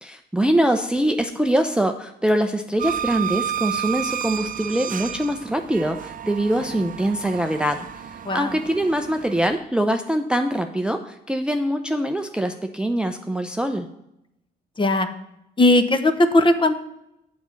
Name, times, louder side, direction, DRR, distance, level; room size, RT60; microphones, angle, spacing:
voice 1, 0.0-13.9, right 1 dB, 5° right, 6 dB, 0.5 m, -23 dB
sound 1, 2.8-9.6, right 9 dB, 45° right, 0.6 m, -31 dB
voice 2, 15.6-16.7, left 1 dB, 25° left, 10 dB, 0.9 m, -18 dB
7.1 x 5.2 x 7.0 m, 0.83 s
cardioid pair, 75°, 20 cm